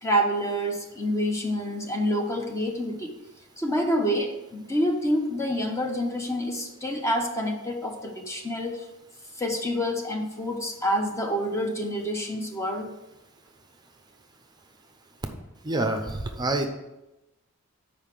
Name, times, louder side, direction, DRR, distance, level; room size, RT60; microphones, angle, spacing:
voice 1, 0.0-3.1 3.6-8.8 9.4-12.9, equal, 15° left, 2 dB, 0.9 m, -27 dB
voice 2, 15.6-16.7, right 2 dB, 20° right, 5 dB, 0.6 m, -27 dB
5.6 x 5.0 x 6.6 m, 0.96 s
head